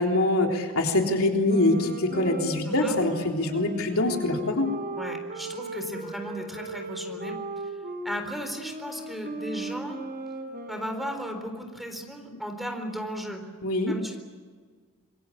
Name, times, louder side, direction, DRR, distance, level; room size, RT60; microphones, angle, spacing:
voice 1, 0.0-4.7 13.6-13.9, left 2 dB, 70° left, 2 dB, 3.6 m, -24 dB
sound 1, 1.5-8.2 8.6-11.6, right 2 dB, 45° right, 4.6 m, -37 dB
voice 2, 2.6-3.0 5.0-7.4 8.0-10.0 10.7-13.4 13.9-14.2, equal, ahead, 5 dB, 4.1 m, -35 dB
27.0 x 22.5 x 8.6 m, 1.5 s
head